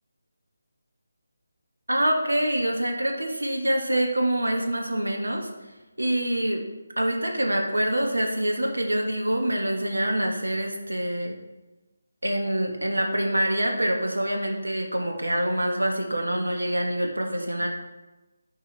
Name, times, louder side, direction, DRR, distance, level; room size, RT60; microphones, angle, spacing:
voice 1, 1.9-5.5 6.0-6.6 7.0-11.4 12.2-17.7, right 1 dB, 90° right, 1 dB, 1.4 m, -25 dB
10.5 x 4.4 x 3.3 m, 1.1 s
figure-of-eight pair, 160°, 0 cm